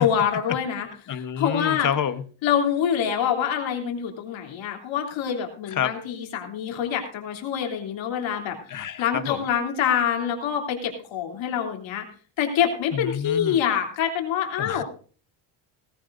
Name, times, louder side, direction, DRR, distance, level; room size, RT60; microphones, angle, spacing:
voice 1, 0.0-1.9 2.4-8.6 9.0-12.0 12.4-14.8, left 8 dB, 75° left, 2 dB, 3.2 m, -26 dB
voice 2, 1.1-2.2 5.7-5.9 8.7-9.4 12.9-13.6 14.6-14.8, left 9 dB, 40° left, 12 dB, 1.1 m, -28 dB
18.0 x 15.0 x 2.6 m, 0.41 s
cardioid pair, 110°, 47 cm